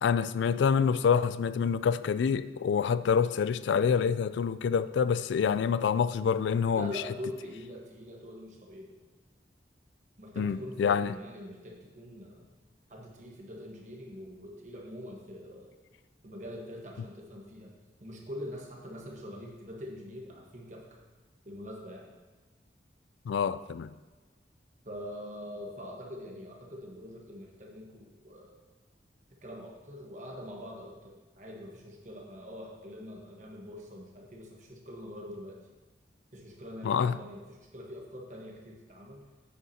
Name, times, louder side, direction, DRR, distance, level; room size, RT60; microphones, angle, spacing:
voice 1, 0.0-6.9 10.4-11.2 23.3-23.9 36.8-37.2, left 6 dB, 75° left, 0.3 m, -27 dB
voice 2, 6.7-8.9 10.2-12.5 12.9-15.7 16.2-17.7 18.0-21.0 21.4-22.1 24.8-28.6 29.4-35.6 36.3-39.2, equal, 40° right, 1.3 m, -44 dB
9.3 x 8.4 x 2.8 m
head